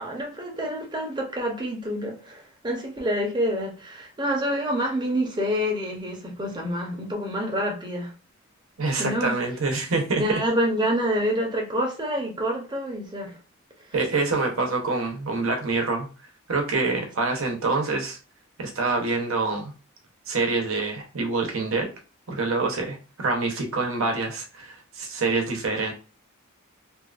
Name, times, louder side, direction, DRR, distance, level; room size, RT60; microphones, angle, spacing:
voice 1, 0.0-8.1 9.0-9.4 10.2-13.4, equal, 20° right, 0.8 m, -27 dB
voice 2, 8.8-10.4 13.9-16.1 16.5-18.2 18.6-19.7 20.3-21.9 22.3-25.9, right 3 dB, 70° right, 0.8 m, -26 dB
2.6 x 2.4 x 2.4 m
head